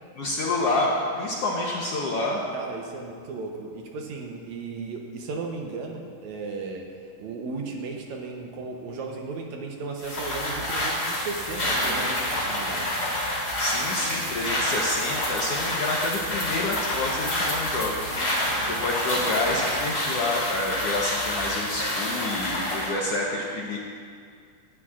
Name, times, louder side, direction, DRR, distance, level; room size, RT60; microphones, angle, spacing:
voice 1, 0.1-2.4 13.6-18.1 18.6-23.8, left 2 dB, 65° left, -3 dB, 1.5 m, -28 dB
voice 2, 2.5-6.9 7.2-13.1 18.4-18.8 22.4-22.7, right 4 dB, 70° right, 1 dB, 2.1 m, -36 dB
sound 1, 10.0-23.0, left 1 dB, 30° left, 3.4 m, -28 dB
18.0 x 12.0 x 2.5 m, 2.2 s
omnidirectional pair, 3.7 m